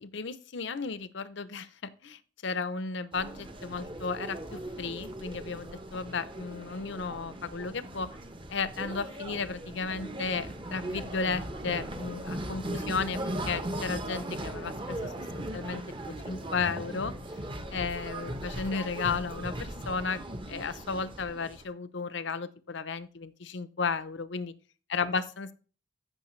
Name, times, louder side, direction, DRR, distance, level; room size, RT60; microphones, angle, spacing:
voice 1, 0.0-8.1 8.5-13.2 13.5-17.1 17.7-20.2 20.5-24.5 24.9-25.5, left 5 dB, 60° left, 14 dB, 0.7 m, -34 dB
sound 1, 3.1-21.6, right 1 dB, 25° right, 0.9 m, -38 dB
14.5 x 6.5 x 3.2 m, 0.38 s
head